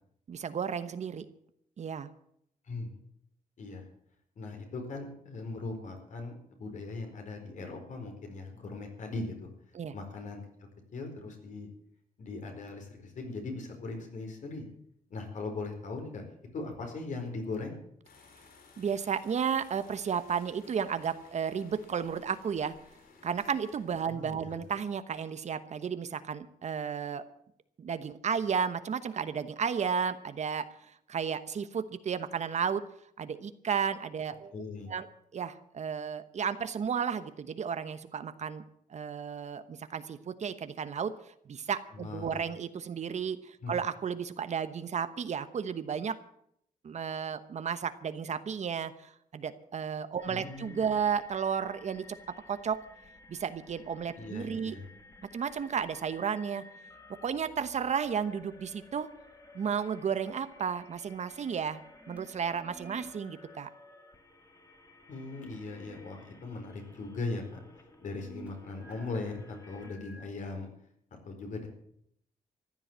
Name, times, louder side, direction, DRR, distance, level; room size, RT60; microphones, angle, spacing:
voice 1, 0.3-1.3 1.8-2.1 9.7-9.9 18.8-22.7 23.2-27.2 27.8-30.7 31.1-32.8 33.2-34.5 34.9-35.1 35.3-38.6 38.9-41.1 41.5-46.1 46.8-52.0 52.5-52.8 53.3-54.8 55.3-56.6 57.2-59.1 59.5-61.8 62.1-63.7, right 7 dB, 50° right, 11 dB, 1.1 m, -33 dB
voice 2, 2.7-3.0 3.6-3.8 4.4-9.5 9.9-10.4 10.9-11.7 12.2-14.6 15.1-16.2 16.5-17.8 24.1-24.6 34.5-34.9 41.9-42.4 43.6-43.8 50.3-51.0 54.2-54.9 65.1-67.6 68.0-70.7 71.2-71.7, left 3 dB, 60° left, 4 dB, 4.5 m, -39 dB
sound 1, 18.0-25.4, left 4 dB, 90° left, 3.3 m, -58 dB
sound 2, 50.2-69.9, left 2 dB, 20° left, 2.0 m, -55 dB
sound 3, 61.8-63.1 65.2-66.1 66.5-66.6 68.0-70.3, right 1 dB, 10° right, 2.8 m, -52 dB
15.0 x 11.0 x 7.4 m, 0.70 s
wide cardioid pair, 135°, 15 cm